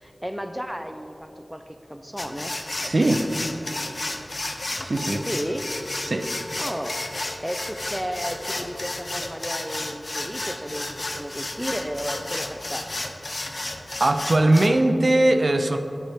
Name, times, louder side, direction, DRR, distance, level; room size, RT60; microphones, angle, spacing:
voice 1, 0.0-2.5 5.3-5.7 6.6-7.0 7.4-12.9, equal, 5° right, 7 dB, 0.4 m, -33 dB
sound 1, 2.2-14.7, left 2 dB, 50° left, 0.6 m, -32 dB
voice 2, 2.8-3.3 4.8-5.2 6.1-6.3 14.0-15.8, right 1 dB, 65° right, 7 dB, 0.5 m, -20 dB
Wind instrument woodwind instrument, 5.1-9.3, left 2 dB, 85° left, 0.8 m, -46 dB
11.5 x 5.5 x 3.5 m, 2.9 s
wide cardioid pair, 50°, 0 cm